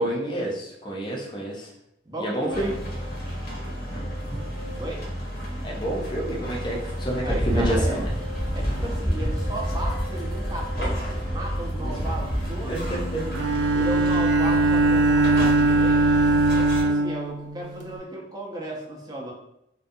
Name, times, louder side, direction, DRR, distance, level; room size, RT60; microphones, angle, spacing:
voice 1, 0.0-1.7 2.2-2.7 5.6-8.1 11.8-12.0 12.7-13.3, right 1 dB, 25° left, -3 dB, 0.5 m, -29 dB
voice 2, 2.1-2.8 4.8-5.0 7.2-8.0 8.5-12.8 13.7-16.1 16.6-19.3, right 1 dB, 20° right, -2 dB, 0.5 m, -35 dB
sound 1, 2.5-16.8, equal, 60° left, 0.8 m, -32 dB
sound 2, 7.2-13.0, equal, ahead, 0.9 m, -28 dB
Bowed string instrument, 13.3-17.9, right 2 dB, 80° right, 0.3 m, -21 dB
2.4 x 2.2 x 2.6 m, 0.80 s
head